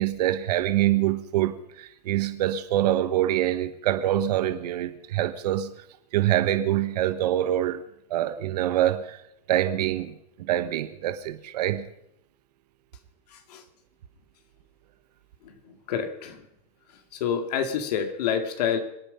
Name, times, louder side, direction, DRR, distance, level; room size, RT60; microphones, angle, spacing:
voice 1, 0.0-5.7 6.1-7.8 8.1-9.2 9.5-11.9, right 13 dB, 75° right, 10 dB, 1.3 m, -25 dB
voice 2, 13.3-13.6 15.4-16.4 17.1-18.8, left 8 dB, 75° left, 6 dB, 2.5 m, -28 dB
25.5 x 9.1 x 5.7 m, 0.80 s
hypercardioid pair, 115°, 21 cm